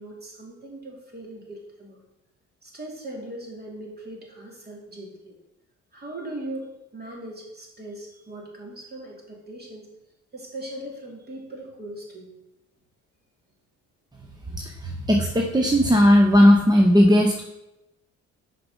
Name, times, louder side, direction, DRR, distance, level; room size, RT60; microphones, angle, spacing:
voice 1, 0.0-2.0 2.6-5.3 5.9-9.9 10.3-12.3, right 1 dB, 35° right, -1 dB, 2.6 m, -39 dB
voice 2, 14.5-17.4, equal, 15° right, 1 dB, 0.8 m, -17 dB
6.6 x 5.2 x 5.4 m, 0.92 s
cardioid pair, 90°, 30 cm